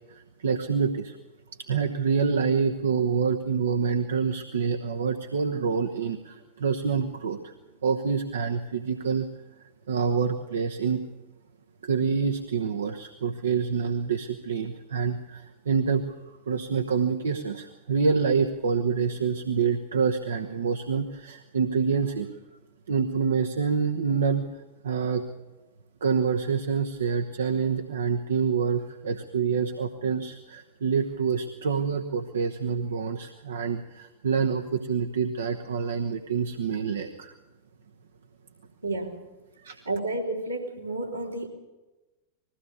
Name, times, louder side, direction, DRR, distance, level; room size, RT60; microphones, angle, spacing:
voice 1, 0.1-1.2 1.6-7.5 7.8-9.3 9.9-11.0 11.8-16.1 16.5-22.3 22.9-24.4 24.8-25.2 26.0-37.3 39.6-39.8, right 6 dB, 65° right, 5 dB, 1.1 m, -27 dB
voice 2, 38.8-39.2 39.9-41.5, right 2 dB, 85° right, -2 dB, 3.6 m, -31 dB
21.0 x 16.0 x 8.3 m, 1.1 s
figure-of-eight pair, 90°, 0 cm